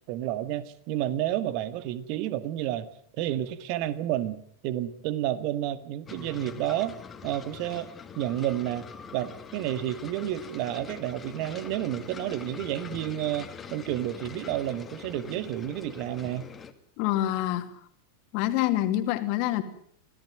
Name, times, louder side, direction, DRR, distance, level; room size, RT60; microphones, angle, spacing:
voice 1, 0.1-2.9 3.2-7.9 8.2-16.5, right 13 dB, 45° right, 13 dB, 1.9 m, -31 dB
sound 1, 6.1-16.7, left 6 dB, 20° left, 2.5 m, -44 dB
voice 2, 17.0-17.7 18.3-19.6, left 14 dB, 45° left, 8 dB, 2.7 m, -26 dB
26.0 x 17.5 x 9.3 m, 0.64 s
figure-of-eight pair, 90°, 0 cm